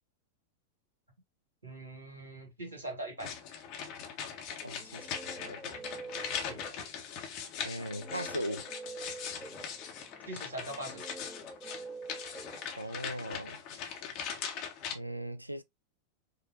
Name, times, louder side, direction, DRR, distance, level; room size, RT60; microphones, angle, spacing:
voice 1, 1.6-3.3 6.4-6.6 10.3-11.1, right 1 dB, 70° right, 1.6 m, -41 dB
sound 1, 3.2-15.0, left 7 dB, 45° left, 0.8 m, -40 dB
Guitar, 4.6-7.1 7.9-13.3, right 3 dB, ahead, 0.6 m, -47 dB
voice 2, 4.6-5.8 7.6-8.7 12.8-13.6 14.9-15.6, equal, 90° right, 0.4 m, -39 dB
5.0 x 2.1 x 2.7 m
figure-of-eight pair, 90°, 0 cm